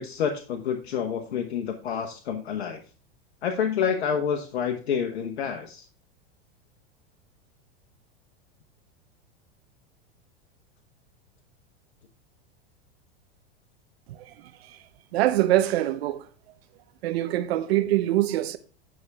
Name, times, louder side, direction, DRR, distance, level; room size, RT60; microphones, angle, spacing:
voice 1, 0.0-2.8 3.4-5.8, left 7 dB, 90° left, 1.2 m, -28 dB
voice 2, 15.1-16.2 17.0-18.6, right 14 dB, 75° right, 0.8 m, -23 dB
9.3 x 6.1 x 3.4 m
hypercardioid pair, 120°, 31 cm